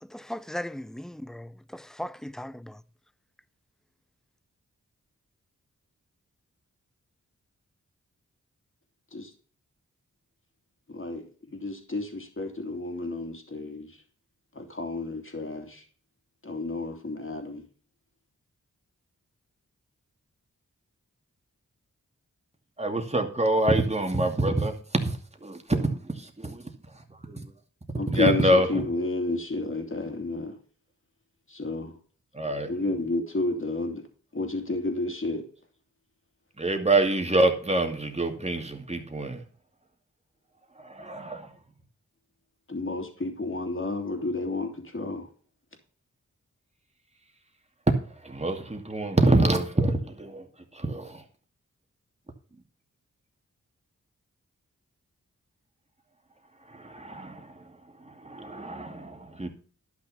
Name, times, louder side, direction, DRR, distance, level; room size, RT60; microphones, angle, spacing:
voice 1, 0.0-2.8, left 1 dB, ahead, 0.5 m, -38 dB
voice 2, 10.9-13.9 14.5-15.8 16.4-17.6 28.0-30.6 31.5-31.9 32.7-34.0 34.3-35.4 42.7-45.3, left 2 dB, 40° left, 2.9 m, -31 dB
voice 3, 22.8-27.5 28.1-28.9 32.3-32.7 36.6-39.4 40.8-41.5 47.9-50.5 50.7-51.2 56.6-59.5, right 1 dB, 20° right, 2.4 m, -26 dB
12.0 x 6.0 x 5.5 m
cardioid pair, 55°, 32 cm